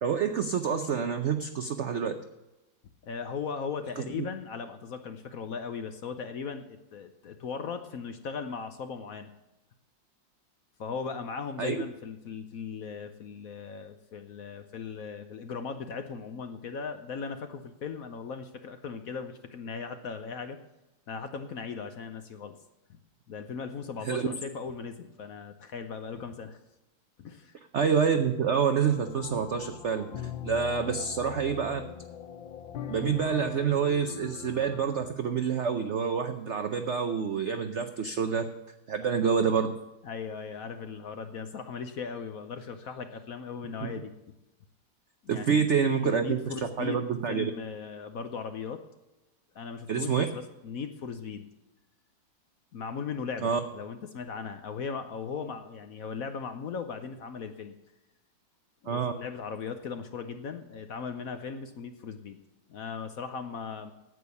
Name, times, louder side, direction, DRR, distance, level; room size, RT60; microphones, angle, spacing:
voice 1, 0.0-2.2 4.0-4.2 11.6-11.7 24.0-24.3 27.7-30.1 30.4-31.8 32.9-38.5 38.9-39.7 45.3-46.4 46.8-47.5 49.9-50.3 53.4-53.6 58.9-59.1, right 6 dB, 70° right, 7 dB, 0.6 m, -27 dB
voice 2, 3.0-9.3 10.8-20.6 21.1-22.5 22.9-23.0 23.3-26.6 27.2-27.5 40.0-44.1 45.2-48.8 49.5-50.3 50.6-51.5 52.7-57.7 58.8-62.4 62.7-63.9, left 5 dB, 60° left, 8 dB, 1.0 m, -38 dB
sound 1, 28.9-35.1, left 9 dB, 90° left, 1.6 m, -41 dB
9.4 x 8.3 x 7.0 m, 0.99 s
omnidirectional pair, 2.1 m